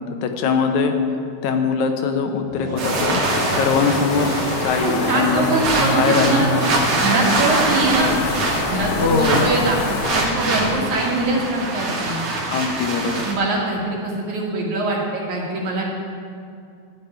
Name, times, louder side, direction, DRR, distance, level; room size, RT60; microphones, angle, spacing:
voice 1, 0.2-1.0 1.4-3.2 3.5-5.4 5.9-6.5 9.0-9.5 12.5-13.3, left 5 dB, 80° left, 5 dB, 2.2 m, -21 dB
sound 1, 2.5-4.9, right 1 dB, 35° right, 2.6 m, -29 dB
sound 2, 2.8-13.3, right 2 dB, 55° right, 2.5 m, -24 dB
sound 3, 3.2-10.2, left 3 dB, 60° left, 1.1 m, -27 dB
voice 2, 4.8-6.5 7.0-8.2 8.6-9.8 10.1-12.2 13.2-15.8, right 2 dB, 75° right, -3 dB, 3.4 m, -23 dB
13.0 x 5.3 x 9.1 m, 2.3 s
omnidirectional pair, 3.4 m